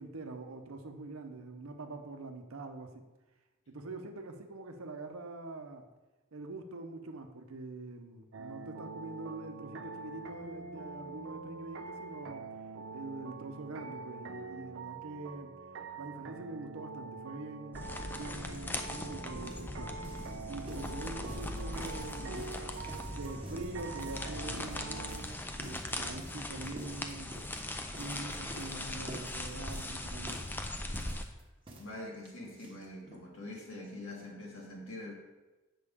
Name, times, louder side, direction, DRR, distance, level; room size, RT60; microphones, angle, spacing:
voice 1, 0.0-3.0 3.7-5.9 6.3-12.5 12.9-15.6 16.0-17.8 18.1-20.0 20.5-22.6 23.0-27.4 28.0-30.5, right 2 dB, 90° right, 6 dB, 0.8 m, -44 dB
sound 1, 8.3-25.2, right 4 dB, 65° right, 0.5 m, -45 dB
sound 2, 17.7-31.2, left 1 dB, 10° left, 0.3 m, -40 dB
sound 3, 18.5-18.6 18.9-33.3 33.5-33.6 33.8-33.9 34.2-34.3, right 1 dB, 25° right, 0.9 m, -50 dB
voice 2, 31.7-35.1, left 1 dB, 70° left, -1 dB, 1.4 m, -44 dB
8.2 x 6.0 x 3.6 m, 1.1 s
head